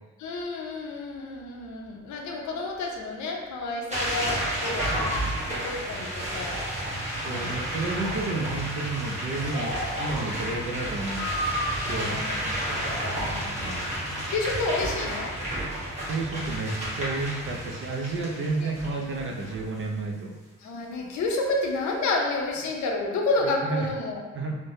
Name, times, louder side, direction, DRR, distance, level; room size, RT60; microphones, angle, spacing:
voice 1, 0.2-5.2 5.5-6.6 7.2-7.5 11.8-13.8 14.3-15.3 18.6-18.7 20.6-24.2, left 2 dB, 70° left, 1 dB, 0.6 m, -30 dB
sound 1, 3.9-19.8, right 1 dB, 20° right, 1.0 m, -31 dB
Breathing, 4.8-5.3 6.3-7.2 7.7-8.1 9.3-10.3 11.1-12.0 12.7-13.4, equal, 65° right, 1.0 m, -34 dB
voice 2, 7.2-11.3 11.8-12.2 16.0-20.3 23.6-23.9 24.3-24.6, right 3 dB, 40° right, 0 dB, 0.5 m, -31 dB
3.1 x 2.1 x 2.6 m, 1.3 s
cardioid pair, 90°, 30 cm